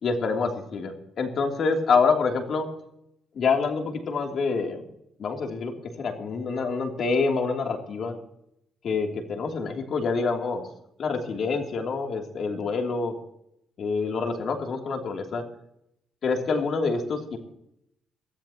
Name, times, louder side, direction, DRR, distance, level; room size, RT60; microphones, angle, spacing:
voice 1, 0.0-2.7 3.3-4.9 5.2-8.2 8.8-10.7 11.0-13.1 13.8-15.4 16.2-17.4, left 4 dB, 60° left, 2 dB, 3.1 m, -26 dB
22.0 x 15.0 x 3.0 m, 0.78 s
cardioid pair, 90°, 0 cm